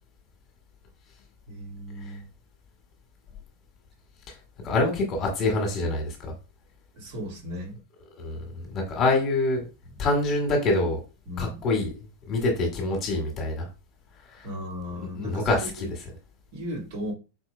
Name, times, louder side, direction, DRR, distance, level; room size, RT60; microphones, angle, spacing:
voice 1, 1.5-2.2 6.9-7.8 11.3-11.6 14.4-15.9 16.5-17.1, equal, 50° right, -3 dB, 2.1 m, -36 dB
voice 2, 4.6-6.2 8.2-9.7 10.0-11.0 11.4-11.9 12.3-13.7 14.3-14.5 15.2-15.9, left 2 dB, 30° left, 1 dB, 1.6 m, -25 dB
4.8 x 4.3 x 2.3 m, 0.30 s
figure-of-eight pair, 90°, 0 cm